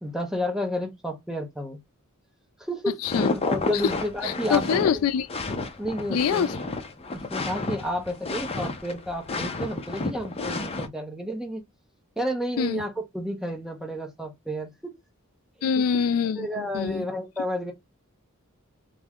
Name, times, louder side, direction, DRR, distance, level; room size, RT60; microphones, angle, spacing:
voice 1, 0.0-1.8 2.6-2.9 3.3-4.8 5.8-6.5 7.0-11.6 12.2-14.7 15.6-15.8 16.4-17.7, equal, 5° right, 0.9 m, -31 dB
voice 2, 3.0-3.3 3.7-3.9 4.2-5.3 6.1-6.5 12.6-12.8 15.6-17.1, left 7 dB, 75° left, 0.3 m, -25 dB
sound 1, 3.0-10.9, left 3 dB, 30° left, 0.6 m, -31 dB
3.1 x 2.7 x 3.5 m
head